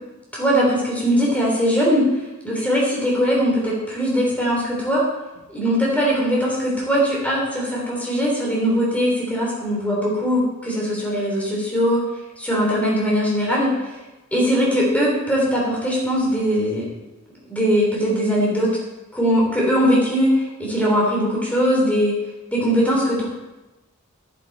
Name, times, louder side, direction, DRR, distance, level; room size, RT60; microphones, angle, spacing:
voice 1, 0.3-2.1 2.4-5.0 5.5-12.1 12.4-13.8 14.3-16.9 17.5-18.7 19.1-22.2 22.5-23.3, equal, 5° left, -4 dB, 3.6 m, -20 dB
11.5 x 10.5 x 4.3 m, 1.1 s
head